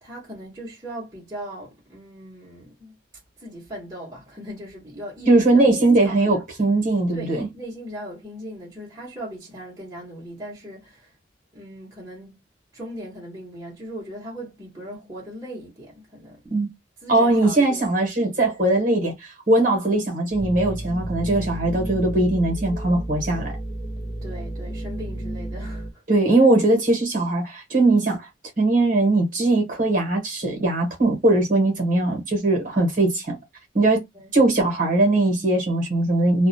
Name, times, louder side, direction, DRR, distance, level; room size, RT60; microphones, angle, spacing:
voice 1, 0.0-3.0 3.4-6.4 7.1-11.1 11.5-12.4 12.7-16.4 17.0-17.9 18.2-18.5 24.2-26.2 34.1-34.3, right 1 dB, 15° right, 0.8 m, -38 dB
voice 2, 5.3-7.5 16.5-16.7 17.1-23.6 26.1-28.3 28.6-33.4 33.7-34.0 34.3-36.5, right 2 dB, 45° right, 0.9 m, -20 dB
sound 1, 20.3-25.9, right 1 dB, 50° left, 0.9 m, -32 dB
2.3 x 2.0 x 2.6 m
head